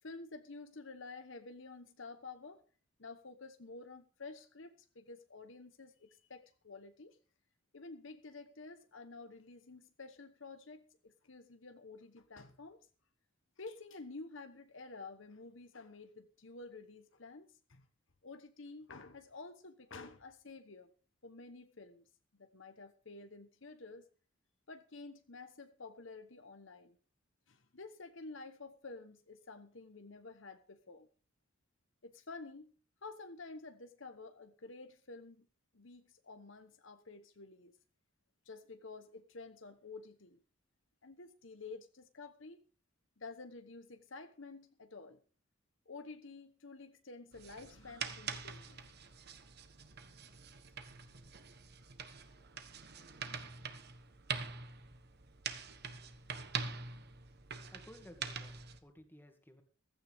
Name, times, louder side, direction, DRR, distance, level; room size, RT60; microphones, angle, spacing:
voice 1, 0.0-2.6 3.0-7.2 7.7-12.8 13.6-17.9 18.2-20.9 21.2-22.0 22.3-24.1 24.7-27.0 27.5-31.1 32.0-32.8 33.0-35.5 35.7-37.8 38.4-40.4 41.0-42.6 43.2-45.2 45.9-48.8, left 3 dB, 65° left, 8 dB, 1.1 m, -51 dB
sound 1, 47.3-58.8, right 6 dB, 50° right, 1.2 m, -45 dB
voice 2, 57.7-59.6, left 1 dB, 10° left, 5 dB, 2.2 m, -57 dB
15.5 x 14.5 x 3.6 m, 0.39 s
head